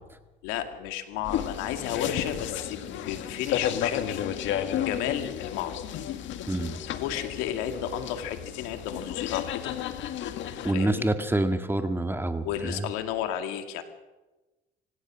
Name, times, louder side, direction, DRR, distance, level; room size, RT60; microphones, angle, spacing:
voice 1, 0.4-4.2 4.7-5.8 6.9-9.7 10.7-11.1 12.4-13.8, left 10 dB, 90° left, 7 dB, 2.3 m, -33 dB
sound 1, 1.2-10.7, left 10 dB, 65° left, 1.9 m, -32 dB
voice 2, 6.5-6.8 10.6-12.8, right 1 dB, 10° right, 8 dB, 1.9 m, -27 dB
25.0 x 17.0 x 6.3 m, 1.1 s
supercardioid pair, 90°, 21 cm